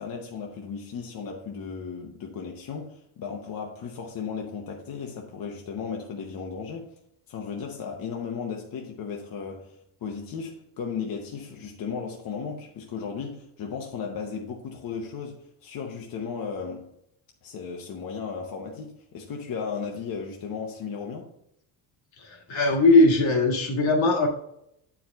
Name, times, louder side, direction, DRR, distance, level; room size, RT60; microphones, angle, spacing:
voice 1, 0.0-6.9 7.3-16.9 17.4-21.3, left 6 dB, 45° left, 0.9 m, -35 dB
voice 2, 22.2-24.3, left 2 dB, 70° left, 1.8 m, -20 dB
9.0 x 4.7 x 3.4 m
cardioid pair, 170°, 48 cm